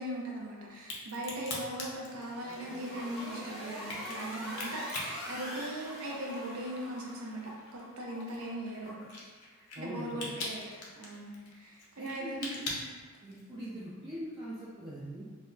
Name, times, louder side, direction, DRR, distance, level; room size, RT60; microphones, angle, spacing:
voice 1, 0.0-7.4 7.7-9.0 9.8-12.8, right 1 dB, 70° right, -2 dB, 0.6 m, -39 dB
Crack, 0.7-6.3 6.6-13.6, left 2 dB, 90° left, 0.6 m, -42 dB
sound 1, 2.0-7.5, equal, ahead, 0.7 m, -44 dB
Water / Sink (filling or washing), 2.7-9.1, left 1 dB, 45° left, 0.5 m, -49 dB
voice 2, 9.8-10.3 12.0-12.6 13.2-15.2, equal, 20° right, -8 dB, 0.3 m, -42 dB
2.2 x 2.1 x 3.7 m, 1.5 s
head